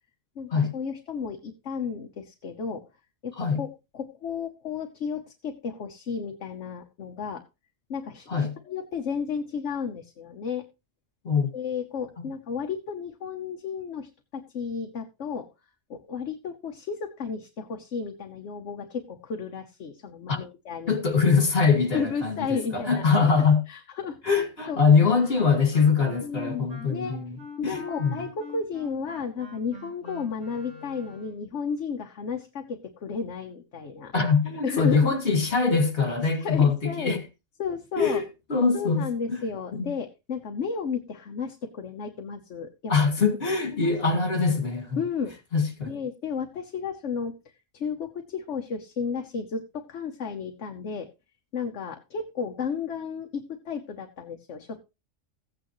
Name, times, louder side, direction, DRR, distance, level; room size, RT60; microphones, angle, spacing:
voice 1, 0.4-2.8 3.2-7.4 7.9-10.6 11.5-15.5 15.9-20.9 21.9-23.3 23.7-24.8 25.1-25.2 26.2-27.2 27.6-34.1 34.6-35.1 36.4-37.2 37.6-38.2 38.7-42.9 43.7-43.9 45.0-45.3 45.8-47.3 47.7-51.1 51.5-54.8, left 6 dB, 70° left, 1.3 m, -33 dB
voice 2, 20.9-23.6 24.2-27.4 27.6-28.2 34.1-37.2 38.0-38.2 38.5-39.0 39.3-39.4 39.7-39.9 42.9-45.0 45.5-46.0, left 5 dB, 50° left, 2.5 m, -23 dB
Wind instrument woodwind instrument, 25.0-31.4, equal, 90° right, 4.7 m, -44 dB
15.0 x 8.9 x 3.1 m
omnidirectional pair, 1.3 m